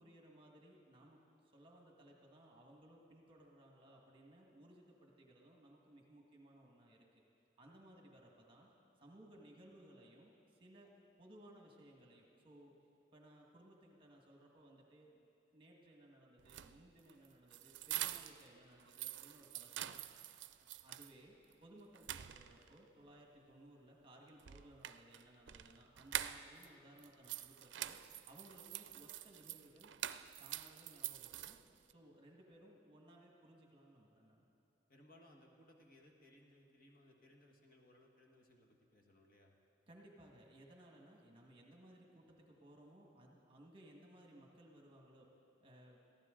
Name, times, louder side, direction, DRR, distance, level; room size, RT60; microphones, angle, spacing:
voice 1, 0.0-7.0 7.6-8.7 9.0-10.9 11.2-12.8 13.1-15.3 15.5-20.0 20.6-21.3 21.6-28.0 28.3-29.9 30.4-31.6 31.9-34.5 39.9-45.3 45.6-46.0, right 1 dB, 30° right, -1 dB, 1.6 m, -61 dB
sound 1, 16.4-18.5 18.8-21.1 21.5-21.6 22.0-22.8 24.4-26.7 27.0-31.9, right 12 dB, 80° right, 0.4 m, -46 dB
voice 2, 34.9-39.5, left 1 dB, 50° left, 0 dB, 1.6 m, -65 dB
22.0 x 15.0 x 3.8 m, 2.8 s
head